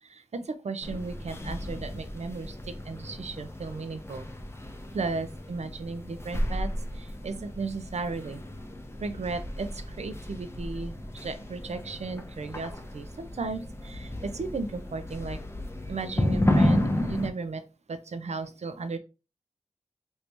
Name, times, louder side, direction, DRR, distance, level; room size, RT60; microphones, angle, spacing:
voice 1, 0.0-4.3 4.9-6.7 6.9-8.4 9.0-15.4 15.9-17.6 17.9-19.0, right 4 dB, 65° right, 10 dB, 0.5 m, -35 dB
sound 1, 0.8-17.3, left 1 dB, 20° left, 0.5 m, -32 dB
3.3 x 2.7 x 3.0 m, 0.30 s
wide cardioid pair, 70°, 12 cm